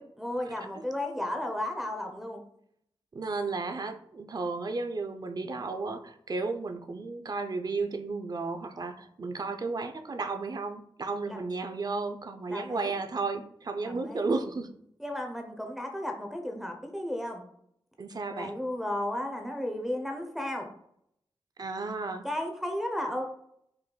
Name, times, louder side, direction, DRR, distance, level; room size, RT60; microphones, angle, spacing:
voice 1, 0.2-2.4 11.3-11.4 12.5-12.9 13.8-14.3 15.0-17.4 18.3-20.7 22.2-23.2, left 1 dB, 5° right, 2 dB, 0.6 m, -34 dB
voice 2, 3.1-14.7 18.0-18.5 21.6-22.3, right 3 dB, 45° right, 7 dB, 0.5 m, -33 dB
5.3 x 3.8 x 2.2 m, 0.71 s
wide cardioid pair, 90°, 9 cm